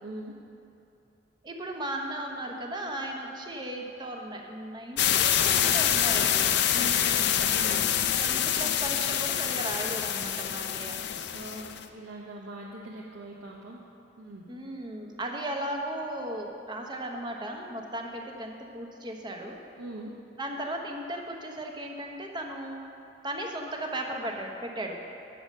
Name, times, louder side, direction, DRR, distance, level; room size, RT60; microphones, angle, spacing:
voice 1, 0.0-0.3 6.7-7.8 11.3-13.8 14.2-14.4 19.8-20.1, right 1 dB, 80° right, -3 dB, 0.9 m, -41 dB
voice 2, 1.4-6.5 8.2-11.0 14.5-19.6 20.4-22.9 23.2-25.0, right 1 dB, 25° right, 1 dB, 0.9 m, -36 dB
sound 1, 5.0-11.8, left 10 dB, 60° left, 0.5 m, -26 dB
8.7 x 7.0 x 6.3 m, 2.7 s
head